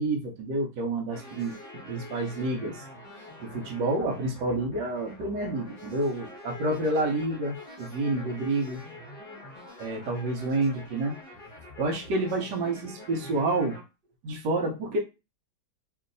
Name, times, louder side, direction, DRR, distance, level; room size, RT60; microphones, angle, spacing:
voice 1, 0.0-1.5 1.8-2.8 3.4-8.8 9.8-11.1 11.8-13.8 14.2-15.0, right 2 dB, 85° right, 0 dB, 1.4 m, -29 dB
sound 1, 1.1-13.8, left 1 dB, 25° left, 0.9 m, -46 dB
3.0 x 2.7 x 2.5 m, 0.27 s
omnidirectional pair, 1.8 m